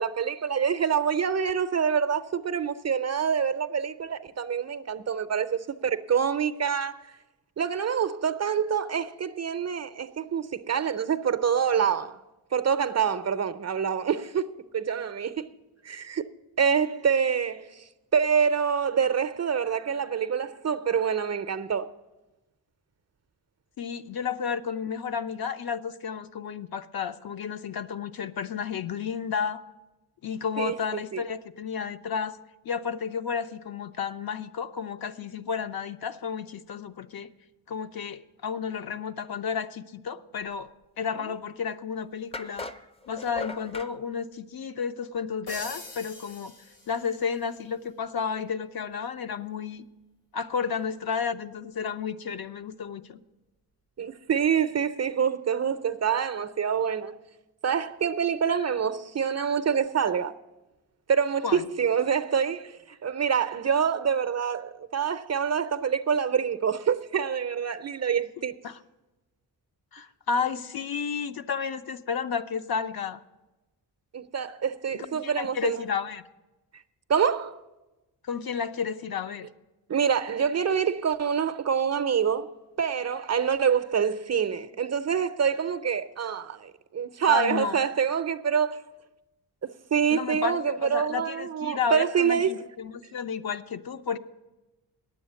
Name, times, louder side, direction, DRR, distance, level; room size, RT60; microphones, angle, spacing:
voice 1, 0.0-7.1 7.6-12.2 12.5-15.5 15.8-16.3 16.6-21.9 30.6-30.8 31.1-31.2 54.0-57.2 57.6-60.3 61.1-68.5 74.1-75.8 77.1-77.6 79.9-82.5 82.8-88.8 89.6-92.6, right 7 dB, 40° right, 0.5 m, -26 dB
voice 2, 23.8-29.6 30.2-32.4 32.6-37.3 37.7-40.7 41.0-42.7 43.1-46.5 46.9-49.9 50.3-53.2 61.4-61.7 68.6-68.8 69.9-73.2 74.9-76.2 78.2-79.5 87.3-87.8 90.1-94.2, left 6 dB, 60° left, 0.6 m, -32 dB
sound 1, 41.5-41.6 42.3-43.9, left 3 dB, 15° left, 0.5 m, -38 dB
sound 2, 45.5-47.5, left 2 dB, 90° left, 2.7 m, -43 dB
9.6 x 7.7 x 9.3 m
cardioid pair, 90°, 41 cm